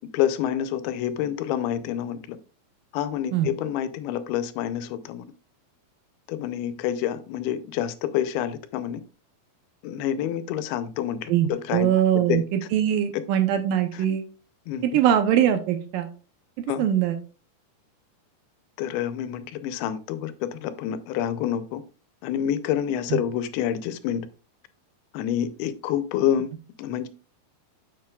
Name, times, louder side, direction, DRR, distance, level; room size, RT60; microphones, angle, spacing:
voice 1, 0.1-2.4 2.9-5.3 6.3-9.0 9.8-11.9 12.3-12.4 13.1-13.2 13.9-14.1 14.7-14.9 16.7-16.8 18.8-21.8 22.2-24.3 25.1-26.5 26.8-27.1, left 10 dB, 85° left, 12 dB, 2.6 m, -28 dB
voice 2, 11.3-14.2 14.9-16.1 16.8-17.2 23.1-23.2, right 10 dB, 75° right, 7 dB, 2.1 m, -22 dB
8.8 x 7.2 x 2.3 m, 0.36 s
omnidirectional pair, 4.4 m